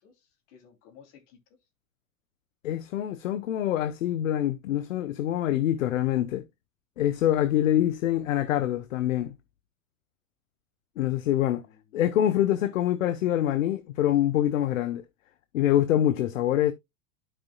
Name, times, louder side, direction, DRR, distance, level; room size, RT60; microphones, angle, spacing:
voice 1, 0.0-1.4 11.5-12.2, left 7 dB, 60° left, 3.2 m, -56 dB
voice 2, 2.6-6.4 7.0-9.3 11.0-11.6 11.9-15.0 15.5-16.7, left 12 dB, 75° left, 0.9 m, -25 dB
12.5 x 5.1 x 2.3 m
hypercardioid pair, 100°, 39 cm